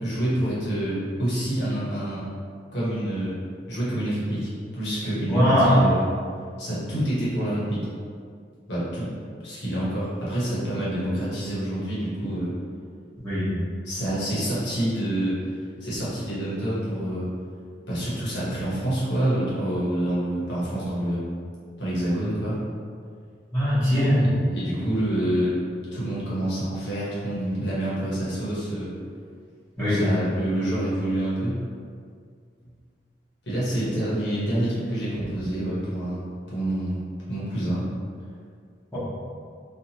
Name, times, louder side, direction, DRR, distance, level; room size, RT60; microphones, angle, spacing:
voice 1, 0.0-2.2 2.7-3.3 3.7-6.0 6.6-7.9 8.7-9.1 9.4-12.5 13.8-15.3 15.8-17.3 17.9-21.2 21.8-22.6 24.1-25.5 25.9-28.9 29.8-31.5 33.4-37.0 37.3-37.8, right 1 dB, 70° left, -9 dB, 1.0 m, -27 dB
voice 2, 5.3-5.8 13.2-13.5 23.5-24.2 29.8-30.0 38.9-39.0, equal, 15° left, -17 dB, 1.0 m, -20 dB
2.7 x 2.4 x 2.8 m, 2.1 s
head